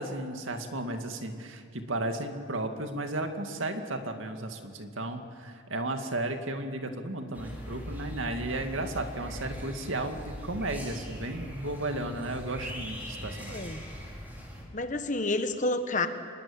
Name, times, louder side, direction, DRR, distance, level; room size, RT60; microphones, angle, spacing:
voice 1, 0.0-13.7, right 2 dB, 70° right, 5 dB, 2.2 m, -34 dB
sound 1, 7.3-14.6, equal, 10° right, 4.1 m, -41 dB
voice 2, 13.5-13.8 14.7-16.1, left 2 dB, 35° left, 8 dB, 1.4 m, -29 dB
26.0 x 21.5 x 8.7 m, 2.2 s
head